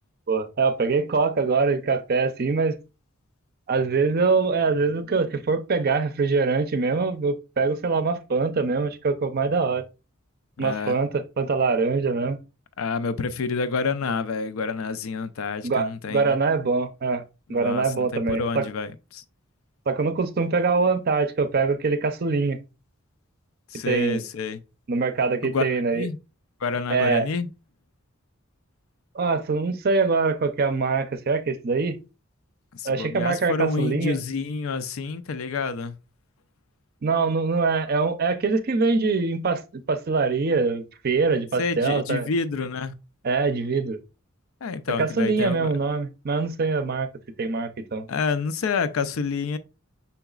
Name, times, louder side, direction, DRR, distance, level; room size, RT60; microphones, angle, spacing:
voice 1, 0.3-2.8 3.7-9.8 10.6-12.4 15.6-17.2 17.5-18.7 19.9-22.6 23.9-24.2 24.9-26.1 26.9-27.3 29.1-32.0 32.8-34.2 37.0-42.3 43.2-44.0 45.0-47.1 47.4-48.1, right 4 dB, 45° right, 0.5 m, -23 dB
voice 2, 10.6-11.0 12.8-16.3 17.5-19.2 23.7-24.6 25.4-26.2 26.6-27.5 32.7-36.0 41.6-42.9 44.6-45.7 48.1-49.6, left 4 dB, 80° left, 0.5 m, -28 dB
5.7 x 3.9 x 2.3 m
head